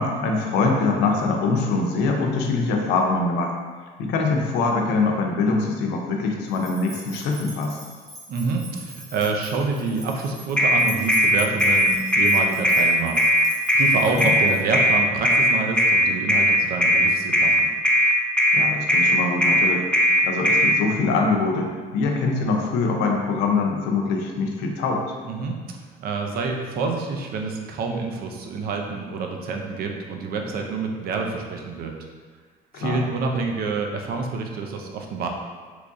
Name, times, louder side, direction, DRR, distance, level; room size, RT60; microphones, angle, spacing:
voice 1, 0.0-3.5 4.0-7.8 14.1-14.3 18.5-25.1 32.7-33.0, left 3 dB, 90° left, 2 dB, 0.6 m, -23 dB
sound 1, 6.5-14.8, right 1 dB, 20° right, 1.0 m, -41 dB
voice 2, 8.3-17.7 25.2-25.6 26.0-31.9 32.7-35.3, right 4 dB, 65° right, 2 dB, 0.5 m, -27 dB
sound 2, 10.6-20.7, equal, 5° left, 0.3 m, -18 dB
3.0 x 2.6 x 3.5 m, 1.5 s
cardioid pair, 110°, 17 cm